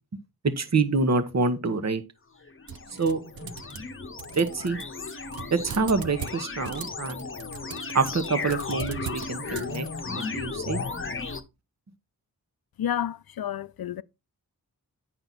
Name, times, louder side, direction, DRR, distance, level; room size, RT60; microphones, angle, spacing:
voice 1, 0.4-2.0 3.0-3.5 4.3-4.8 5.5-7.2 7.9-9.9 10.3-10.8, right 4 dB, 45° right, 1.1 m, -26 dB
sound 1, 2.4-11.4, left 4 dB, 35° left, 0.9 m, -35 dB
sound 2, 2.7-10.3, right 9 dB, 65° right, 0.7 m, -40 dB
voice 2, 12.8-14.0, left 10 dB, 70° left, 0.5 m, -30 dB
8.7 x 6.0 x 4.0 m
wide cardioid pair, 70°, 38 cm